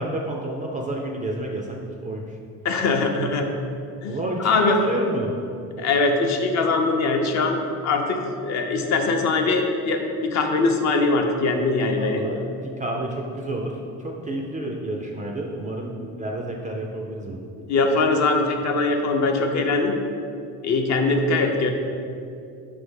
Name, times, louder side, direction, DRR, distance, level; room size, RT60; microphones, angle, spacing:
voice 1, 0.0-1.7 2.0-2.2 4.1-5.3 11.9-17.4, right 1 dB, 20° right, 0 dB, 0.4 m, -29 dB
voice 2, 2.6-3.5 4.0-4.8 5.8-7.6 7.8-12.2 17.7-19.9 20.6-21.7, left 3 dB, 45° left, 3 dB, 0.6 m, -22 dB
5.6 x 3.4 x 5.3 m, 2.5 s
cardioid pair, 140°, 39 cm